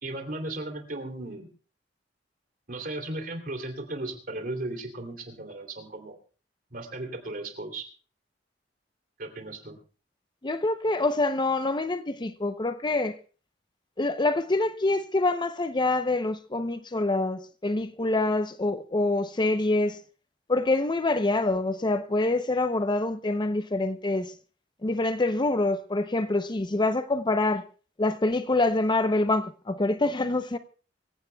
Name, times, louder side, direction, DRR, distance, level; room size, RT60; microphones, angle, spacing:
voice 1, 0.0-1.5 2.7-6.2 6.7-7.8 9.2-9.8, right 2 dB, 50° right, 2.9 m, -36 dB
voice 2, 10.4-13.2 14.0-20.0 20.5-24.3 24.8-27.7 28.0-30.6, left 2 dB, 25° left, 0.6 m, -26 dB
24.5 x 16.0 x 2.3 m
head